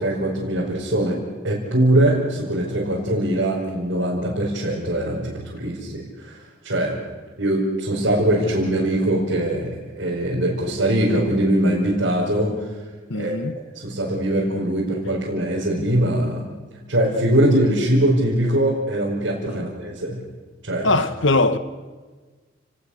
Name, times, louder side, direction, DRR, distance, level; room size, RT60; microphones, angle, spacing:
voice 1, 0.0-7.0 7.4-12.7 13.1-16.6 16.9-20.2 20.6-21.0, right 1 dB, 80° right, 5.2 m, -22 dB
voice 2, 13.1-13.6 19.5-19.7 20.8-21.6, left 2 dB, 75° left, 1.4 m, -21 dB
30.0 x 19.5 x 6.6 m
head